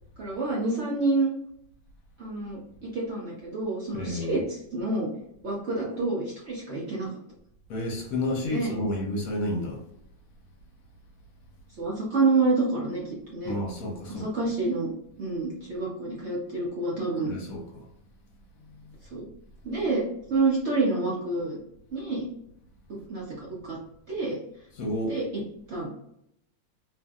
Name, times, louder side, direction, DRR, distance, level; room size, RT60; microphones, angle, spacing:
voice 1, 0.2-1.3 2.2-5.1 5.4-7.1 8.4-8.7 11.8-13.5 14.1-14.9 15.2-17.3 19.1-19.3 19.6-21.6 21.9-22.2 22.9-23.2 23.6-23.8 24.1-24.4 25.1-25.4 25.7-25.9, right 3 dB, 65° right, -5 dB, 0.7 m, -28 dB
voice 2, 3.9-4.4 7.7-9.8 13.4-14.3 17.2-17.9 18.8-18.9 24.8-25.2, left 1 dB, 60° left, 1 dB, 1.0 m, -31 dB
2.9 x 2.6 x 2.3 m, 0.76 s
omnidirectional pair, 2.0 m